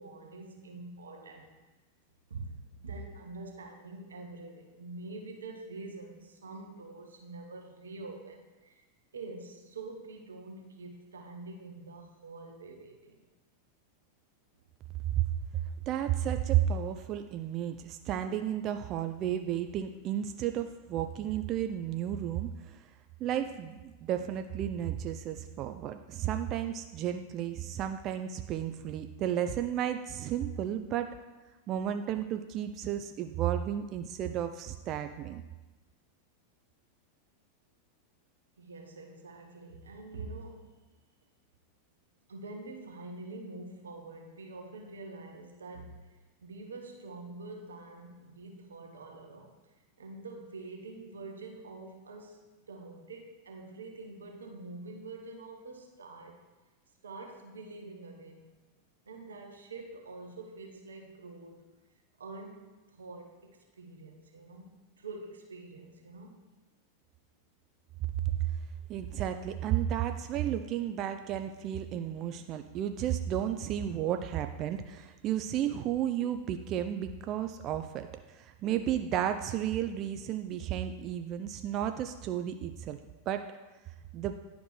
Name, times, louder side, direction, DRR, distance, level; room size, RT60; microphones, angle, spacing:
voice 1, 0.0-1.6 2.3-8.8 9.1-13.2 38.6-40.8 42.3-49.6 50.0-56.4 57.0-58.5 59.1-61.6 62.2-66.4, right 3 dB, 85° right, 2 dB, 1.0 m, -46 dB
voice 2, 15.9-22.9 23.2-31.1 31.7-35.4 68.3-68.5 68.9-83.0 83.3-83.5 84.1-84.4, right 10 dB, 40° right, 8 dB, 0.4 m, -33 dB
10.5 x 5.1 x 3.1 m, 1.1 s
hypercardioid pair, 100°, 0 cm